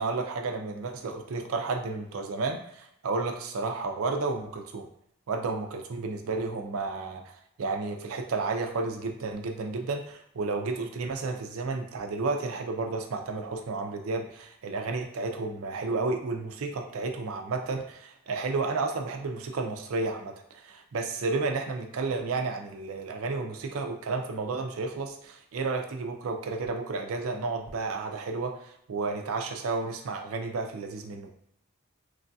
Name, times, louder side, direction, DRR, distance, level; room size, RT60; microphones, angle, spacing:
voice 1, 0.0-4.9 5.3-7.2 7.6-31.3, right 3 dB, 85° right, 4 dB, 0.4 m, -32 dB
3.1 x 2.3 x 2.6 m, 0.75 s
head